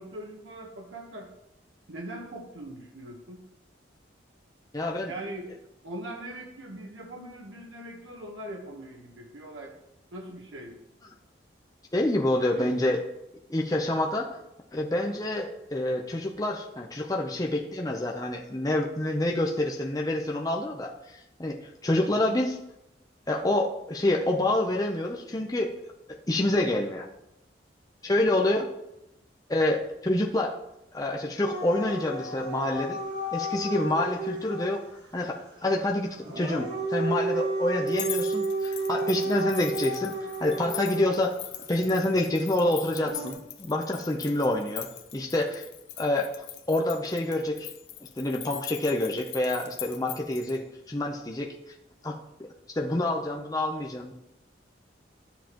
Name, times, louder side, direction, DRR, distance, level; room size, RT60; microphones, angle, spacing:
voice 1, 0.0-1.3 1.9-3.4 5.1-5.6 5.8-9.8 10.1-10.8 12.4-12.8 22.1-22.4, right 1 dB, 90° right, -1 dB, 1.2 m, -41 dB
voice 2, 4.7-5.1 11.9-13.0 13.5-14.3 14.7-22.6 23.3-25.7 26.3-27.1 28.0-28.7 29.5-30.6 30.9-33.0 33.3-34.8 35.1-35.4 35.6-41.4 41.7-45.6 46.0-46.3 46.7-47.7 48.2-51.5 52.0-52.2 52.7-54.1, left 1 dB, 20° left, 1 dB, 0.7 m, -27 dB
Dog / Siren, 31.4-34.7 36.2-41.3 43.0-43.3, right 2 dB, 65° right, 1.8 m, -32 dB
sound 1, 37.9-50.6, left 12 dB, 65° left, 0.8 m, -41 dB
12.5 x 7.4 x 3.0 m, 0.86 s
head